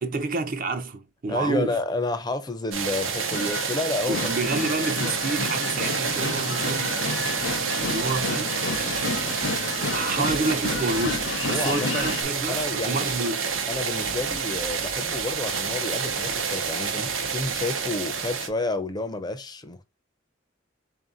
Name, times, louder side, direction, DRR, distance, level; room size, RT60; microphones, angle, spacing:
voice 1, 0.0-1.8 4.1-7.0 7.8-8.6 9.9-13.5, right 3 dB, 45° right, 0.6 m, -29 dB
voice 2, 1.3-4.2 10.1-10.3 11.5-12.2 12.5-13.1 13.7-19.8, left 2 dB, 20° left, 0.5 m, -30 dB
sound 1, 2.7-18.5, right 6 dB, 90° right, 0.8 m, -28 dB
sound 2, 3.3-12.2, left 4 dB, 70° left, 0.6 m, -31 dB
3.8 x 2.7 x 3.7 m
head